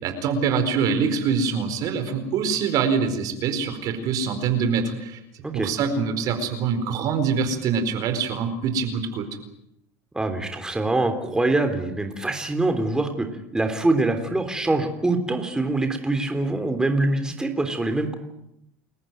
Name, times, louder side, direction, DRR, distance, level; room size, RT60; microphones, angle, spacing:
voice 1, 0.0-5.2 5.5-9.3, right 6 dB, 55° right, 9 dB, 4.5 m, -24 dB
voice 2, 10.1-13.3 13.5-18.1, right 2 dB, 10° right, 6 dB, 3.6 m, -24 dB
29.5 x 14.5 x 9.4 m, 0.82 s
supercardioid pair, 105°, 7 cm